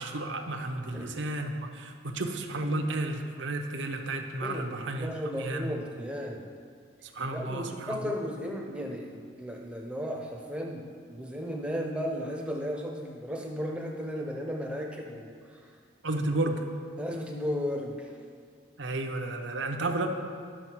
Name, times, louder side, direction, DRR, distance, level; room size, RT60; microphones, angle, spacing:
voice 1, 0.0-5.7 7.0-8.1 16.0-16.6 18.8-20.1, right 2 dB, 80° right, 4 dB, 0.8 m, -32 dB
voice 2, 4.4-6.5 7.3-15.7 17.0-18.2, equal, 5° right, 0 dB, 0.8 m, -35 dB
11.0 x 6.4 x 4.6 m, 2.1 s
head